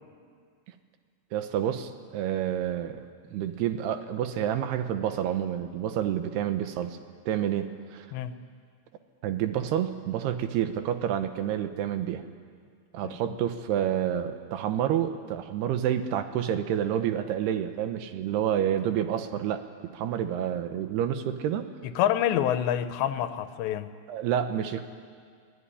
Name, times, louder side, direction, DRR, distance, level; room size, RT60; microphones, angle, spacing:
voice 1, 1.3-3.0 3.3-7.0 7.3-8.1 9.2-12.3 12.9-19.6 19.9-21.7 24.1-24.8, right 10 dB, 75° right, 9 dB, 2.7 m, -29 dB
voice 2, 13.0-13.4 21.8-23.9, left 11 dB, 80° left, 11 dB, 3.0 m, -27 dB
24.0 x 16.5 x 9.9 m, 2.1 s
omnidirectional pair, 5.1 m